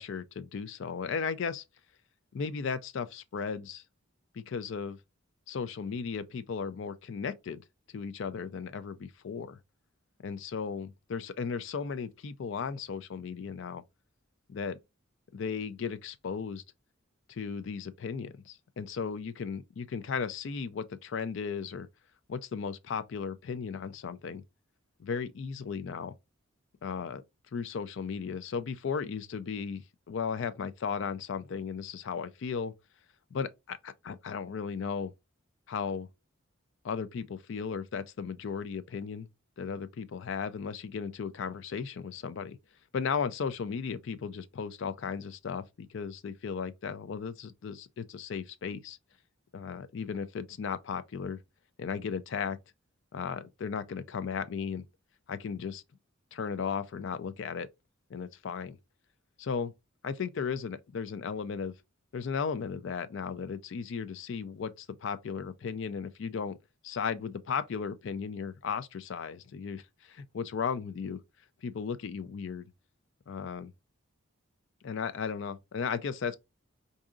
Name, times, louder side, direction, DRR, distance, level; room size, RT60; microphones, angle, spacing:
voice 1, 0.0-1.6 2.3-3.8 4.3-5.0 5.5-7.6 7.9-9.6 10.2-13.8 14.5-14.8 15.3-16.6 17.3-21.9 22.3-24.4 25.0-26.2 26.8-27.2 27.5-29.8 30.1-32.7 33.3-35.1 35.7-36.1 36.8-39.3 39.6-42.6 42.9-49.0 49.5-51.4 51.8-52.6 53.1-54.8 55.3-55.8 56.3-57.7 58.1-58.8 59.4-59.7 60.0-61.7 62.1-66.6 66.8-71.2 71.6-72.7 73.3-73.7 74.8-76.4, left 6 dB, 60° left, 0.4 m, -35 dB
4.7 x 2.7 x 2.4 m
head